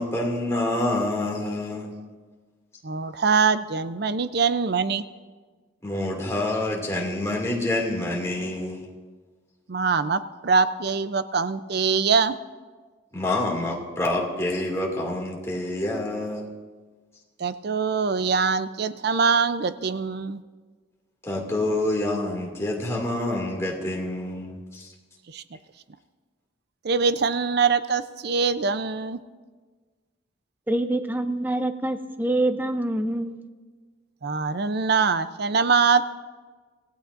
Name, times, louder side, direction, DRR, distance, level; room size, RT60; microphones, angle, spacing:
voice 1, 0.0-1.9 5.8-8.9 13.1-16.5 21.2-24.9, left 1 dB, 15° left, -1 dB, 2.3 m, -27 dB
voice 2, 2.8-5.0 9.7-12.4 17.4-20.4 25.3-25.4 26.8-29.2 34.2-36.0, right 5 dB, 55° right, 12 dB, 0.5 m, -23 dB
voice 3, 30.7-33.5, right 1 dB, 10° right, 9 dB, 0.6 m, -26 dB
26.5 x 16.5 x 2.6 m, 1.4 s
head